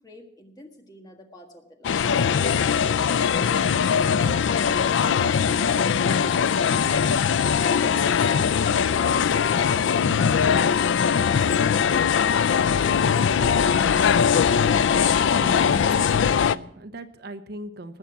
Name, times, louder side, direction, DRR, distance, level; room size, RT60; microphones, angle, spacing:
voice 1, 0.0-2.0 2.3-4.9 5.4-6.9 7.3-13.4, left 1 dB, 20° left, 3 dB, 1.7 m, -46 dB
sound 1, 1.8-16.6, left 7 dB, 80° left, 0.4 m, -21 dB
voice 2, 15.3-18.0, right 1 dB, 55° right, 10 dB, 0.8 m, -39 dB
19.5 x 7.2 x 5.9 m, 0.69 s
head